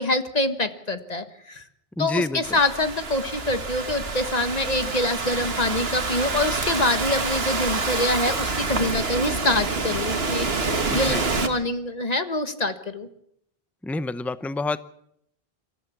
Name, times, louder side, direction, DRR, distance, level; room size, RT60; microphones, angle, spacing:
voice 1, 0.0-1.6 2.0-13.1, left 2 dB, 40° left, 9 dB, 1.6 m, -25 dB
voice 2, 2.0-2.6 10.9-11.3 13.8-14.8, left 2 dB, ahead, 14 dB, 0.6 m, -28 dB
Thunderstorm / Rain, 2.4-11.5, right 3 dB, 75° right, 1.9 m, -27 dB
25.0 x 14.5 x 7.2 m, 0.73 s
omnidirectional pair, 1.0 m